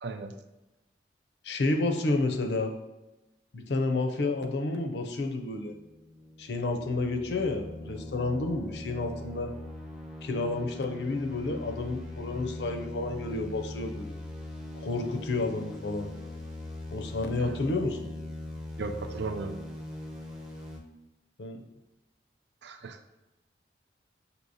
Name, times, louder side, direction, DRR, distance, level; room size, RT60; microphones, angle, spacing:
voice 1, 0.0-0.3 17.5-17.6 18.8-19.6 22.6-23.0, right 4 dB, 70° right, 7 dB, 0.4 m, -36 dB
voice 2, 1.4-2.7 3.5-5.8 6.4-9.5 10.2-14.2 14.7-16.1 16.9-18.0 21.4-21.6, left 2 dB, 65° left, 5 dB, 0.5 m, -30 dB
sound 1, 5.6-20.8, left 1 dB, 5° right, 0.5 m, -41 dB
6.1 x 2.8 x 2.7 m, 1.0 s
head